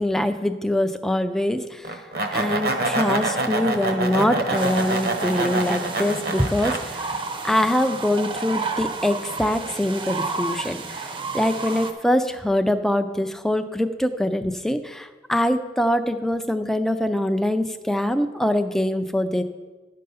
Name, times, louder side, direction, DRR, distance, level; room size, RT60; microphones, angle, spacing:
voice 1, 0.0-1.8 2.3-7.0 7.4-11.1 11.3-19.4, left 1 dB, ahead, 8 dB, 0.4 m, -23 dB
sound 1, 1.9-6.8, right 2 dB, 55° right, 1.0 m, -25 dB
sound 2, 4.5-11.9, right 4 dB, 25° right, 0.7 m, -32 dB
11.0 x 6.6 x 5.5 m, 1.3 s
head